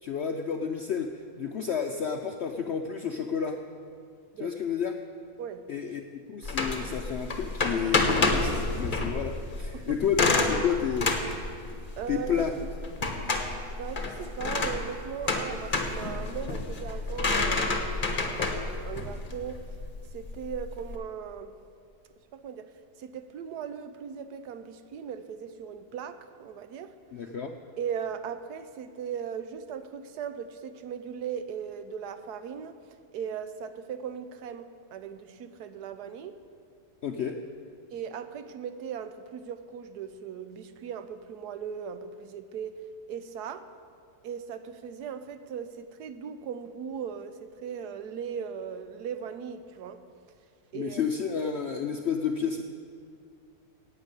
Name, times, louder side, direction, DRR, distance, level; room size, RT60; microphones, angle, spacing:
voice 1, 0.0-3.6 4.4-4.9 5.7-11.1 12.1-12.5 27.1-27.5 37.0-37.4 50.7-52.6, left 7 dB, 60° left, 4 dB, 0.7 m, -31 dB
voice 2, 5.4-5.7 9.7-10.0 12.0-12.5 13.7-19.7 20.1-21.6 22.3-27.0 27.8-32.8 33.1-36.4 37.9-42.8 43.1-43.7 44.2-50.0 50.7-51.0, right 7 dB, 90° right, 10 dB, 1.3 m, -38 dB
sound 1, 6.4-20.9, left 3 dB, 35° left, 1.2 m, -29 dB
12.0 x 8.7 x 8.2 m, 2.3 s
omnidirectional pair, 1.7 m